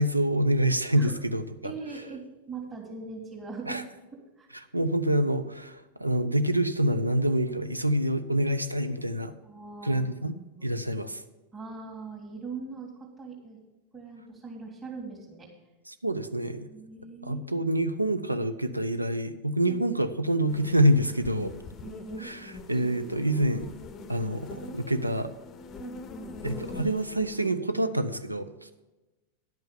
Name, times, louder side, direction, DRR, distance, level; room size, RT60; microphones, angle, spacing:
voice 1, 0.0-1.7 3.7-3.8 4.7-9.3 9.8-10.3 10.6-11.2 15.9-16.6 17.2-21.5 22.2-23.7 24.1-25.3 26.4-28.7, right 1 dB, 85° right, 11 dB, 0.6 m, -26 dB
voice 2, 1.6-3.8 4.4-4.5 9.4-10.7 11.5-12.9 13.2-13.6 13.9-15.5 16.6-17.7 19.7-19.8 21.8-22.5 25.8-26.0, right 4 dB, 20° right, -3 dB, 1.9 m, -41 dB
sound 1, 20.5-27.5, left 2 dB, 30° left, 0.6 m, -43 dB
10.5 x 5.5 x 7.1 m, 1.1 s
figure-of-eight pair, 90°, 0 cm